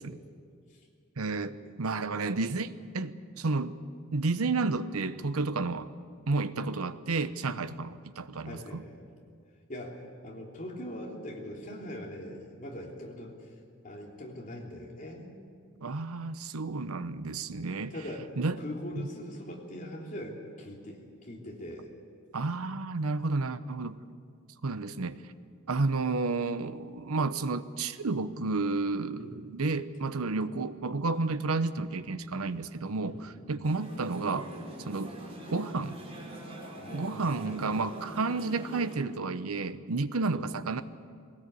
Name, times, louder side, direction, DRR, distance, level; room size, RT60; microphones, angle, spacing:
voice 1, 1.2-3.8 4.1-5.9 6.3-8.8 15.8-17.9 18.4-18.6 19.0-19.1 22.3-24.0 24.6-25.2 25.7-34.5 34.9-35.1 35.5-36.0 36.9-40.8, right 3 dB, 90° right, 12 dB, 0.8 m, -31 dB
voice 2, 8.4-9.0 9.7-13.5 13.8-15.3 17.9-18.2 18.6-21.9 29.2-29.4 33.0-33.7 36.8-37.8 40.3-40.5, left 1 dB, 40° left, -1 dB, 3.3 m, -42 dB
sound 1, 33.6-39.0, right 1 dB, 30° right, 4.2 m, -44 dB
20.5 x 18.0 x 8.3 m, 2.2 s
head